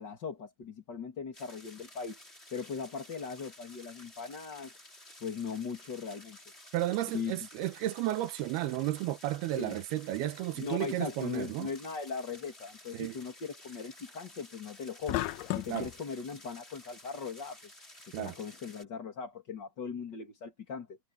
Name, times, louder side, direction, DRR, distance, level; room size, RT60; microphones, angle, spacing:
voice 1, 0.0-2.2 2.5-4.8 5.2-6.4 7.1-7.4 9.6-9.8 10.6-17.6 18.1-21.0, left 5 dB, 30° left, 2.7 m, -39 dB
sound 1, 1.3-18.8, left 1 dB, 15° left, 7.4 m, -54 dB
voice 2, 6.7-11.7 12.9-13.2 15.7-15.9 18.1-18.4, right 14 dB, 90° right, 3.0 m, -33 dB
sound 2, 15.1-15.9, left 17 dB, 80° left, 2.1 m, -33 dB
omnidirectional pair, 4.4 m